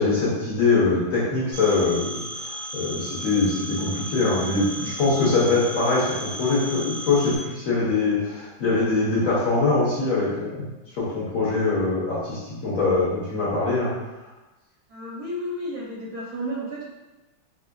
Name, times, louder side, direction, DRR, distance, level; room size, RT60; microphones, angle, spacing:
voice 1, 0.0-10.7 10.9-13.9, left 3 dB, 60° left, -8 dB, 0.9 m, -23 dB
Telephone, 1.5-7.4, right 1 dB, 45° right, 0.4 m, -35 dB
voice 2, 14.9-16.8, equal, 70° right, -5 dB, 0.9 m, -32 dB
4.4 x 2.4 x 2.2 m, 1.1 s
omnidirectional pair, 2.2 m